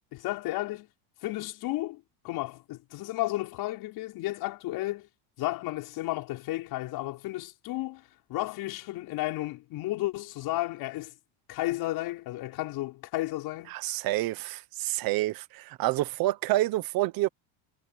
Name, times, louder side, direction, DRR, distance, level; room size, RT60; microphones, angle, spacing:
voice 1, 0.1-0.9 1.2-5.1 5.4-8.0 8.3-11.1 11.5-13.7, left 17 dB, 60° left, 5.7 m, -33 dB
voice 2, 13.7-17.3, right 16 dB, 55° right, 1.2 m, -28 dB
cardioid pair, 140°, 42 cm